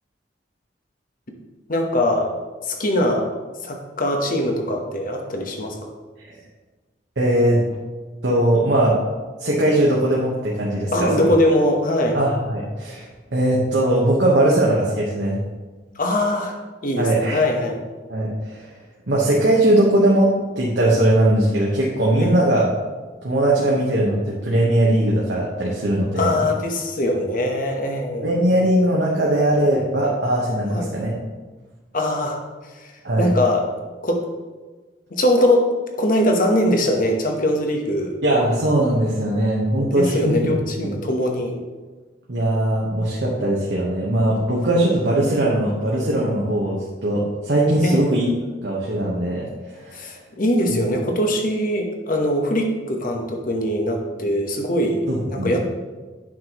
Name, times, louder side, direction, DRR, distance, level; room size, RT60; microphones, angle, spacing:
voice 1, 1.7-2.3 2.6-3.3 3.6-5.7 10.9-12.2 15.9-16.5 16.8-17.8 22.2-22.4 26.1-28.3 30.7-30.9 31.9-32.4 32.7-32.9 33.2-33.6 34.0-34.2 35.1-38.1 39.8-41.6 47.8-48.2 49.9-55.7, left 1 dB, 50° left, 3 dB, 1.0 m, -22 dB
voice 2, 7.2-7.6 8.2-9.0 9.4-11.3 12.1-15.4 17.0-17.4 18.1-18.7 19.1-22.6 23.2-26.3 28.2-31.2 33.0-33.3 38.2-40.3 40.8-40.9 42.3-48.3 48.6-50.1 50.7-50.8 55.1-55.6, right 1 dB, 80° right, -4 dB, 1.1 m, -20 dB
8.4 x 6.1 x 3.0 m, 1.3 s
head